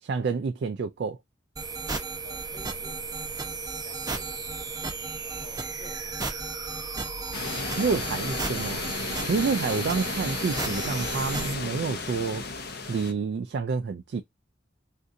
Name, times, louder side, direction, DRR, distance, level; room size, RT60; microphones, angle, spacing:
voice 1, 0.0-1.2 7.8-8.8 9.2-12.4 12.9-14.2, right 5 dB, 60° right, 0.3 m, -28 dB
sound 1, 1.6-11.5, right 3 dB, 20° right, 0.7 m, -34 dB
voice 2, 2.2-4.9 5.2-6.6, equal, 40° left, 1.3 m, -53 dB
sound 2, 7.3-13.1, left 4 dB, 55° left, 0.6 m, -33 dB
3.8 x 2.5 x 2.6 m
head